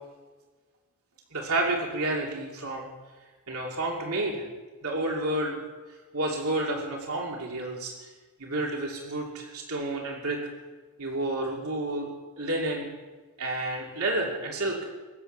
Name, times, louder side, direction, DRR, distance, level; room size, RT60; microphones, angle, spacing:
voice 1, 1.3-2.9 3.5-4.4 4.8-5.6 6.1-8.1 8.4-10.4 11.0-12.1 12.4-12.9 13.4-14.8, right 2 dB, 75° right, -1 dB, 2.8 m, -30 dB
23.5 x 7.8 x 6.7 m, 1.3 s
head